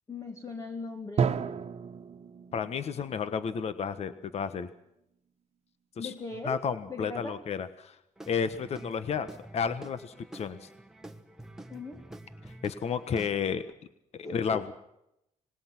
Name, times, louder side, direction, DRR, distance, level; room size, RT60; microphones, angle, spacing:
voice 1, 0.1-1.4 6.0-6.6 6.9-7.4 11.7-12.0 14.2-14.7, left 3 dB, 25° left, 3 dB, 2.0 m, -39 dB
Drum, 1.2-4.9, right 6 dB, 50° right, 1.4 m, -34 dB
voice 2, 2.5-4.7 6.0-6.1 6.4-7.9 8.3-9.3 9.5-10.7 12.6-13.6 14.3-14.7, left 6 dB, 50° left, 12 dB, 1.3 m, -31 dB
Guitar / Drum, 8.2-13.7, right 1 dB, 5° right, 1.4 m, -48 dB
26.0 x 20.0 x 6.1 m, 0.81 s
cardioid pair, 140°, 14 cm